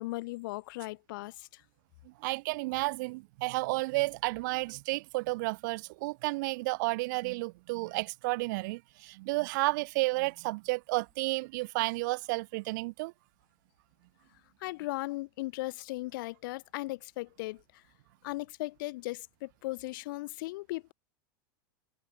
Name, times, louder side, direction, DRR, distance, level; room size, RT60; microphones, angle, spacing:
voice 1, 0.0-1.6 14.6-17.6 18.2-20.9, left 20 dB, 65° left, 0.4 m, -37 dB
voice 2, 2.0-13.1, right 23 dB, 60° right, 0.4 m, -32 dB
supercardioid pair, 150°, 12 cm